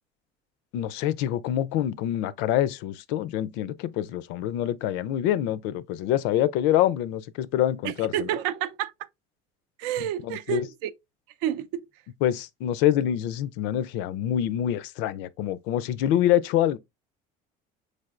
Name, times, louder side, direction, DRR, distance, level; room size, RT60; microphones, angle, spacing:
voice 1, 0.7-8.3 10.0-10.7 12.2-16.8, left 12 dB, 85° left, 0.4 m, -26 dB
voice 2, 7.8-8.9 9.8-10.9 11.4-11.7, right 11 dB, 90° right, 0.5 m, -29 dB
5.3 x 3.3 x 2.4 m
cardioid pair, 140°, 18 cm